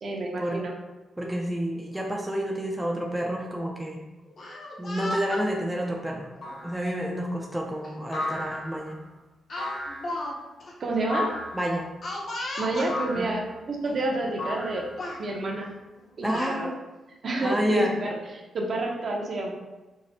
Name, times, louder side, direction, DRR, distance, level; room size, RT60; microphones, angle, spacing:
voice 1, 0.0-0.7 10.8-11.3 12.6-14.8 15.2-15.7 16.2-16.7 17.2-19.5, right 2 dB, 50° right, 0 dB, 0.6 m, -29 dB
voice 2, 1.2-4.0 4.8-6.3 6.6-9.0 11.5-11.9 13.2-13.3 16.2-16.7 17.4-17.9, equal, 5° right, -1 dB, 0.4 m, -29 dB
Speech, 4.3-5.5 6.4-6.6 7.8-7.9 8.3-8.5 9.5-10.4 10.6-10.7 12.0-12.9 13.9-14.0 14.3-14.7 15.0-15.2 16.0-16.6, left 1 dB, 50° left, 0.6 m, -35 dB
sound 1, 6.4-6.8 8.1-8.9 9.6-10.1 11.1-11.6 12.9-13.4 14.4-15.1, left 2 dB, 75° left, 1.3 m, -33 dB
4.7 x 2.0 x 2.7 m, 1.1 s
cardioid pair, 115°, 0 cm